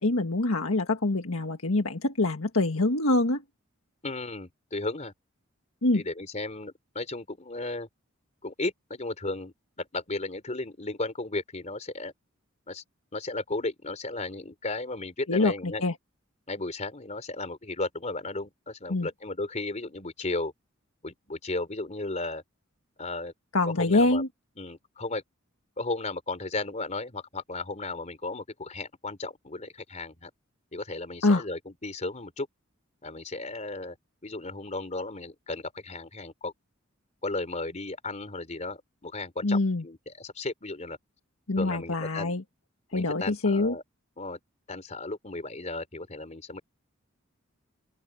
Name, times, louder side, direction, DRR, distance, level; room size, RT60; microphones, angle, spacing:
voice 1, 0.0-3.4 5.8-6.0 15.3-15.9 18.9-19.1 23.5-24.3 31.2-31.4 39.4-39.8 41.5-42.4 42.9-43.7, left 2 dB, 85° left, 1.7 m, -25 dB
voice 2, 4.0-5.1 5.9-7.9 8.4-12.1 12.7-12.8 13.1-15.8 16.5-20.5 21.0-22.4 23.0-23.3 23.8-24.2 24.6-25.2 25.8-30.3 30.7-32.5 33.0-34.0 34.2-36.5 37.2-41.0 41.6-42.3 42.9-43.8 44.2-44.4 44.7-46.6, left 2 dB, 35° left, 3.6 m, -35 dB
open air
head